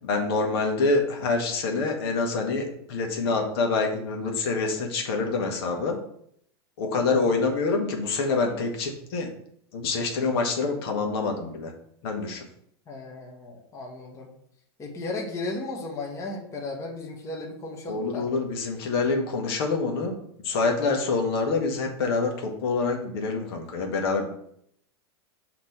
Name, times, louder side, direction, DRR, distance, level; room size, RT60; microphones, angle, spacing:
voice 1, 0.0-6.0 6.8-9.3 9.7-11.7 12.0-12.5 17.9-24.3, left 3 dB, 65° left, 2 dB, 1.3 m, -26 dB
voice 2, 7.0-7.4 12.9-14.3 14.8-18.3, left 2 dB, 20° left, 0 dB, 1.1 m, -35 dB
5.9 x 2.9 x 5.5 m, 0.69 s
supercardioid pair, 125°, 14 cm